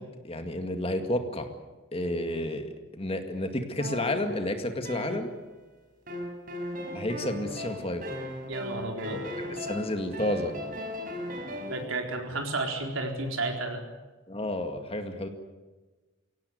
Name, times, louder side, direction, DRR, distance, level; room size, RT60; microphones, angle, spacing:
voice 1, 0.0-1.5 1.9-5.3 6.9-8.0 9.1-10.5 14.3-15.3, left 1 dB, 30° left, 6 dB, 2.1 m, -31 dB
sound 1, 3.8-5.6 6.1-11.9, left 1 dB, 45° right, 4.8 m, -37 dB
voice 2, 8.5-9.2 11.6-13.8, right 2 dB, 80° right, 3 dB, 4.3 m, -32 dB
23.5 x 17.5 x 9.6 m, 1.3 s
head